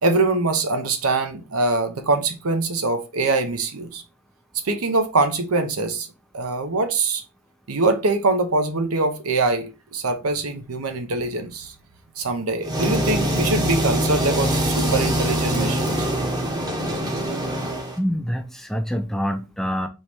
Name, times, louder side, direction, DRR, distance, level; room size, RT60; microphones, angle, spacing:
voice 1, 0.0-4.0 4.6-6.1 6.3-7.2 7.7-11.7 12.2-16.1, right 3 dB, 80° right, 0.8 m, -23 dB
sound 1, 12.6-18.0, right 1 dB, 20° right, 0.8 m, -23 dB
voice 2, 18.0-19.9, equal, ahead, 0.4 m, -26 dB
4.5 x 3.1 x 3.4 m
head